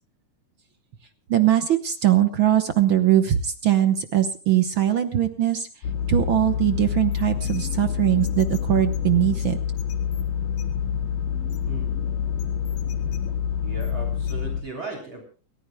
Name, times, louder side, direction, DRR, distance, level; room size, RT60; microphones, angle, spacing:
voice 1, 1.3-5.7 6.1-9.6, right 12 dB, 75° right, 8 dB, 1.1 m, -21 dB
sound 1, 5.8-14.6, left 8 dB, 90° left, 3.3 m, -27 dB
voice 2, 13.6-15.2, right 3 dB, 35° right, 4 dB, 4.0 m, -36 dB
29.5 x 14.5 x 2.2 m, 0.38 s
omnidirectional pair, 3.8 m